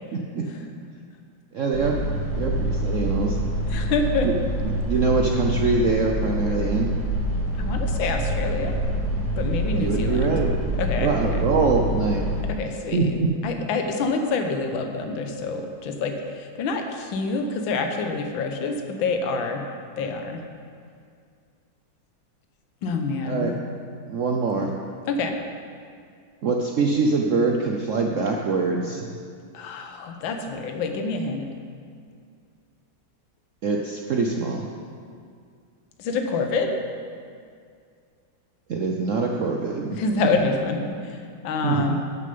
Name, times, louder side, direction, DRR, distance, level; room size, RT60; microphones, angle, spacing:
voice 1, 1.5-2.0 2.4-3.4 4.2-4.3 4.6-6.9 9.8-10.5 11.0-12.3 12.9-13.3 23.3-23.5 24.1-24.7 26.4-29.1 33.6-34.7 38.7-40.0 41.6-41.9, right 4 dB, 70° right, 1 dB, 0.7 m, -24 dB
sound 1, 1.7-12.5, right 1 dB, 55° right, 2.8 m, -26 dB
voice 2, 3.7-4.3 7.6-8.7 9.4-10.4 10.8-11.5 12.4-13.1 13.4-19.6 20.0-20.4 22.8-23.5 25.1-25.4 29.5-31.5 36.0-36.7 39.9-42.0, left 3 dB, 75° left, 4 dB, 1.7 m, -27 dB
13.5 x 6.6 x 5.4 m, 2.2 s
omnidirectional pair, 2.2 m